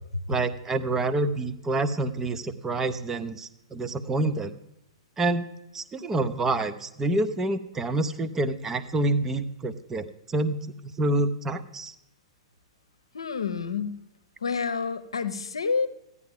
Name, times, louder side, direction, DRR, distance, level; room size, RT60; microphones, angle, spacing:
voice 1, 0.3-4.5 5.2-5.4 5.7-11.9, right 2 dB, 15° right, 10 dB, 0.6 m, -27 dB
voice 2, 13.1-14.0 14.4-15.9, left 5 dB, 70° left, 11 dB, 0.8 m, -28 dB
15.0 x 9.6 x 3.6 m, 0.86 s
figure-of-eight pair, 105°, 3 cm